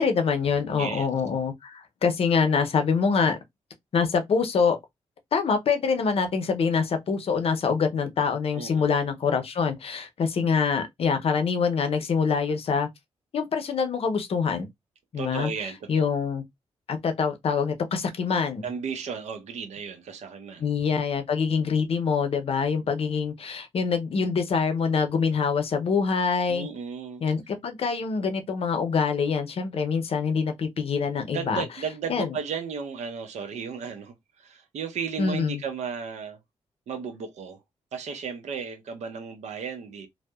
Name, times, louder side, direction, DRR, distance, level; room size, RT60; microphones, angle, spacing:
voice 1, 0.0-3.4 3.9-4.8 5.3-12.9 13.3-14.7 15.1-15.5 15.9-16.4 16.9-18.7 20.6-26.7 27.2-31.6 32.1-32.3 35.2-35.6, left 5 dB, 55° left, 0.6 m, -25 dB
voice 2, 0.7-1.1 8.5-8.9 15.2-15.9 18.6-20.6 26.5-27.2 31.3-36.4 36.9-37.6 37.9-40.1, right 6 dB, 75° right, 0.6 m, -34 dB
2.7 x 2.0 x 2.2 m
cardioid pair, 80°, 12 cm